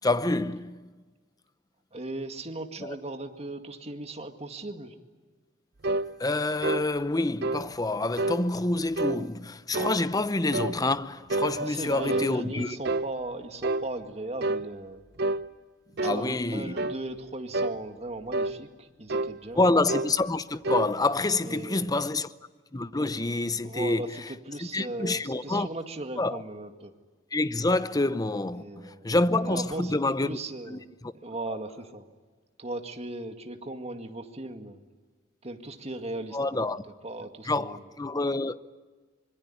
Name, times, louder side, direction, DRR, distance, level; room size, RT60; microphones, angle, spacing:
voice 1, 0.0-0.9 2.8-3.0 6.2-12.8 16.0-16.9 19.5-22.3 22.7-24.2 24.6-25.7 26.2-26.4 27.3-30.4 30.7-31.1 31.5-31.6 36.3-36.8 37.4-38.6, left 2 dB, 20° left, 0.8 m, -27 dB
voice 2, 1.9-5.0 11.6-15.0 15.9-19.6 21.4-22.0 23.6-26.9 28.5-30.0 30.2-30.8 31.2-32.1 32.6-34.8 35.4-36.8 37.0-37.8, right 2 dB, 35° right, 2.0 m, -37 dB
sound 1, 5.8-6.1 6.6-6.9 7.4-7.6 8.2-8.4 9.0-9.2 9.7-10.0 10.5-10.8 11.3-12.3 12.8-13.1 13.6-13.9 14.4-14.6 15.2-15.4 16.0-16.2 16.8-17.0 17.5-17.8 18.3-18.6 19.1-19.3 19.9-20.1 20.6-20.9, right 2 dB, 60° right, 0.8 m, -28 dB
25.0 x 22.5 x 9.9 m
head